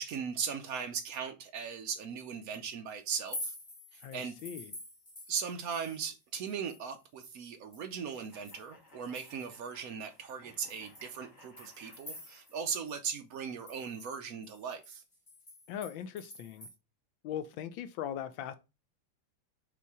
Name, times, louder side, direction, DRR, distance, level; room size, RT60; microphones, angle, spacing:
voice 1, 0.0-3.5 3.9-4.3 5.3-15.0, right 6 dB, 75° right, 0.8 m, -38 dB
sound 1, 3.3-6.2 6.5-9.7 10.1-10.2 10.7-12.6 12.9-13.0 13.3-16.7, left 1 dB, 15° left, 1.2 m, -48 dB
voice 2, 4.0-4.8 15.7-16.7 17.2-18.5, left 9 dB, 75° left, 1.2 m, -40 dB
sound 2, 8.3-12.9, left 2 dB, 40° left, 1.9 m, -60 dB
5.6 x 4.2 x 4.7 m
omnidirectional pair, 2.4 m